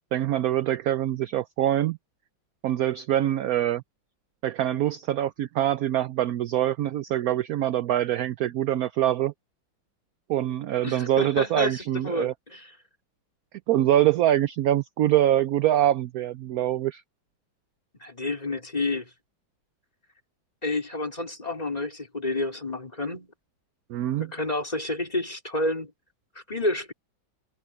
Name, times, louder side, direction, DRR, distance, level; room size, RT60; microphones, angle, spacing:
voice 1, 0.1-2.0 2.6-3.8 4.4-9.3 10.3-12.3 13.7-17.0 23.9-24.3, right 12 dB, 75° right, 0.8 m, -24 dB
voice 2, 10.8-12.7 18.0-19.1 20.6-23.3 24.2-25.9 26.5-26.9, left 2 dB, 20° left, 4.2 m, -29 dB
omnidirectional pair, 2.1 m